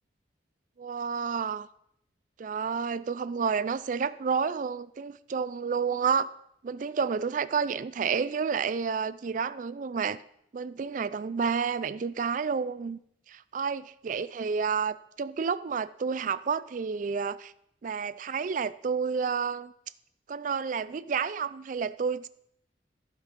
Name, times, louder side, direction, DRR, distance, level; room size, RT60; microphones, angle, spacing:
voice 1, 0.8-1.7 2.4-6.3 6.6-10.2 10.5-13.0 13.3-17.5 17.8-19.7 20.3-22.3, right 6 dB, 45° right, 0.4 m, -30 dB
14.5 x 5.2 x 4.1 m
head